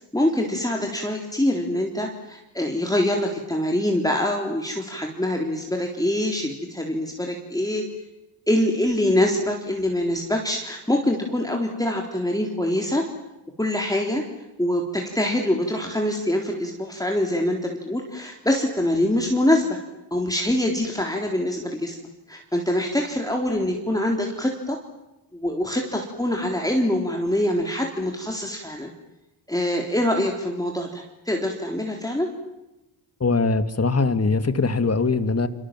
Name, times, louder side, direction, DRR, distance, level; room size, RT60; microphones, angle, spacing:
voice 1, 0.1-7.8 8.5-13.0 13.6-14.2 14.6-19.8 20.1-22.0 22.3-24.8 25.3-28.9 29.5-32.3, left 1 dB, 10° left, 1 dB, 3.8 m, -24 dB
voice 2, 33.2-35.5, left 4 dB, 35° left, 11 dB, 2.2 m, -21 dB
28.5 x 25.5 x 7.6 m, 0.99 s
cardioid pair, 75°, 45 cm